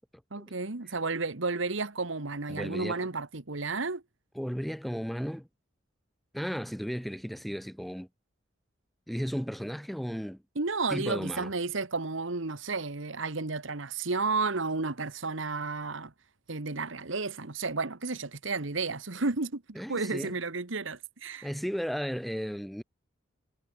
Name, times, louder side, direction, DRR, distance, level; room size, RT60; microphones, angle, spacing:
voice 1, 0.3-4.0 10.5-16.1 16.5-21.5, right 3 dB, 75° right, 1.5 m, -32 dB
voice 2, 2.5-3.1 4.3-5.5 6.3-8.1 9.1-10.4 10.9-11.5 19.7-20.4 21.4-22.8, equal, ahead, 0.9 m, -34 dB
head